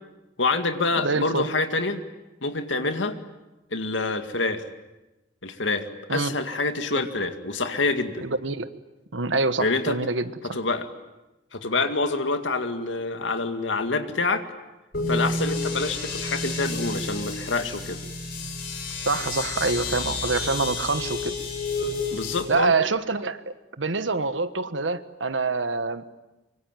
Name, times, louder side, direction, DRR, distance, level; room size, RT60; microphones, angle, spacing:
voice 1, 0.4-2.0 2.4-3.2 3.7-4.6 5.4-8.2 9.6-10.0 10.5-10.9 11.5-14.5 15.1-18.0 22.1-22.7, left 3 dB, 85° left, 8 dB, 2.1 m, -26 dB
voice 2, 1.0-1.5 6.1-6.3 8.2-8.7 9.1-10.3 19.0-21.4 22.5-26.1, right 3 dB, 90° right, 12 dB, 1.4 m, -26 dB
sound 1, 14.9-22.4, left 3 dB, 55° left, 7.6 m, -30 dB
25.5 x 24.0 x 9.1 m, 1.0 s
head